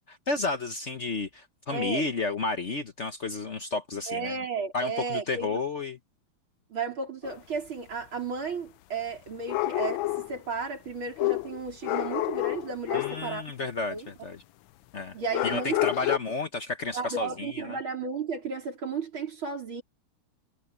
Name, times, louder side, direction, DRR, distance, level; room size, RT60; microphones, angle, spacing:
voice 1, 0.1-4.4 4.7-6.0 12.9-14.4 14.9-15.2 15.4-17.8, left 3 dB, 45° left, 1.1 m, -32 dB
voice 2, 1.7-2.1 4.1-5.6 6.7-13.5 13.9-14.1 15.1-15.9 16.9-19.8, right 4 dB, 85° right, 5.0 m, -33 dB
sound 1, 7.2-7.3 9.4-10.4 11.2-13.3 15.3-16.2, left 19 dB, 80° left, 1.3 m, -29 dB
omnidirectional pair, 2.2 m